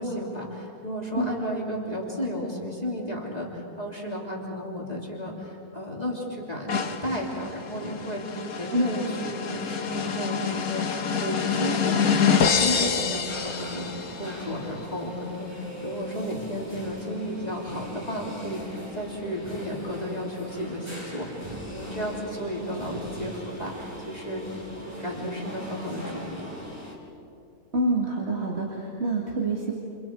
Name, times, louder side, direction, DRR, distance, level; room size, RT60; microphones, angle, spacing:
voice 1, 0.0-13.9 14.2-24.4 24.7-26.4, equal, 25° left, -3 dB, 3.4 m, -33 dB
sound 1, 6.7-14.3, left 6 dB, 65° left, 1.7 m, -27 dB
sound 2, 13.3-26.9, equal, 10° right, 5.1 m, -40 dB
voice 2, 27.7-29.7, right 2 dB, 40° right, -2 dB, 2.5 m, -26 dB
30.0 x 29.5 x 4.7 m, 2.9 s
omnidirectional pair, 1.7 m